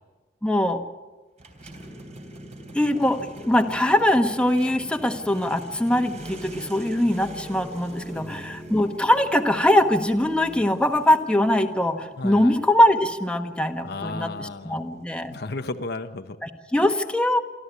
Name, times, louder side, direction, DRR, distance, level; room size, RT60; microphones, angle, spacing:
voice 1, 0.4-0.8 2.7-15.3 16.4-17.4, left 1 dB, 5° left, 4 dB, 1.3 m, -22 dB
sound 1, 1.4-15.7, right 1 dB, 40° right, 3.4 m, -43 dB
voice 2, 8.1-8.6 12.2-12.6 13.8-14.8 15.3-16.4 16.8-16.9, left 3 dB, 65° left, 8 dB, 0.9 m, -34 dB
27.0 x 13.0 x 8.3 m, 1.2 s
head